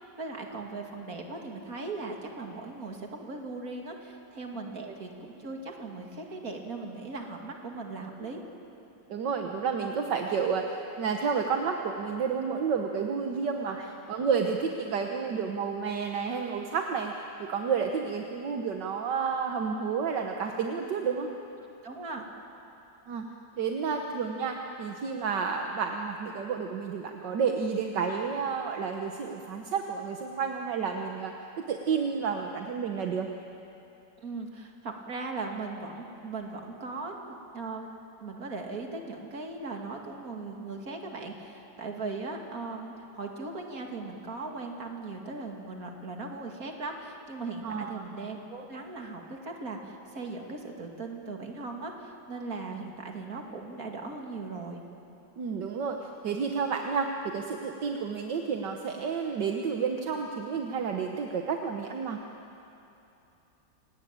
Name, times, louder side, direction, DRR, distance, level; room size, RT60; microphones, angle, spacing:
voice 1, 0.0-8.4 13.7-13.9 21.8-22.3 34.2-37.9 38.2-54.8, right 3 dB, 50° right, 2 dB, 2.8 m, -38 dB
voice 2, 9.1-13.8 14.1-21.3 23.1-23.2 23.6-31.3 31.7-33.3 47.6-48.0 55.4-62.2, right 6 dB, 70° right, 3 dB, 1.8 m, -30 dB
28.0 x 19.0 x 8.9 m, 2.9 s
omnidirectional pair, 2.0 m